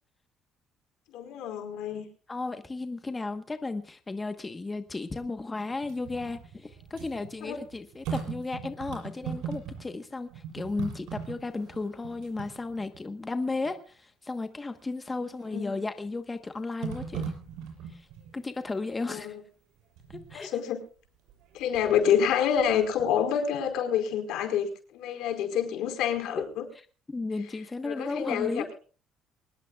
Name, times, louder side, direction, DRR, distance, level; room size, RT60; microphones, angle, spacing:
voice 1, 1.1-2.1 7.4-7.6 15.5-15.7 19.1-19.3 20.3-20.8 21.5-26.7 27.8-28.7, left 8 dB, 80° left, 6 dB, 4.6 m, -27 dB
voice 2, 2.3-17.2 17.9-18.1 18.3-19.4 20.1-20.5 27.1-28.7, left 3 dB, 15° left, 8 dB, 1.2 m, -34 dB
sound 1, 5.7-10.0 10.3-13.1 13.6-13.7 15.4-15.9 16.8-18.3 20.0-20.4 21.3-22.0 22.4-23.4 23.7-23.8, right 7 dB, 85° right, 7.1 m, -39 dB
24.0 x 20.0 x 2.4 m, 0.39 s
cardioid pair, 150°, 0 cm